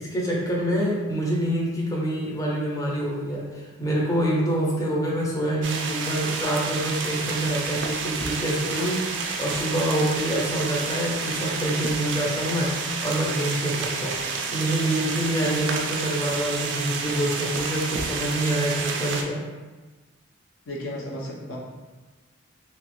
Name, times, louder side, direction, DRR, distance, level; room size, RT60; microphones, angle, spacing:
voice 1, 0.0-19.4, right 1 dB, 15° left, -4 dB, 0.5 m, -26 dB
sound 1, 5.6-19.2, right 4 dB, 60° right, 0.3 m, -30 dB
voice 2, 20.7-21.6, left 1 dB, 85° left, -3 dB, 0.7 m, -34 dB
2.9 x 2.3 x 3.0 m, 1.2 s
head